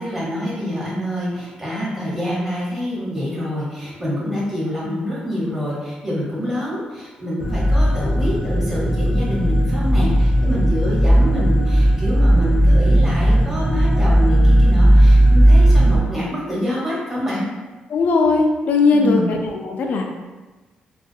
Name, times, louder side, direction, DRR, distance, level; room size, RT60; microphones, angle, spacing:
voice 1, 0.0-17.5 18.9-19.3, left 1 dB, 15° right, -7 dB, 1.0 m, -26 dB
sound 1, 7.4-16.0, right 1 dB, 45° right, 0.7 m, -15 dB
voice 2, 17.9-20.0, left 3 dB, 65° left, 2 dB, 0.4 m, -18 dB
2.3 x 2.3 x 2.6 m, 1.2 s
cardioid pair, 95°, 3 cm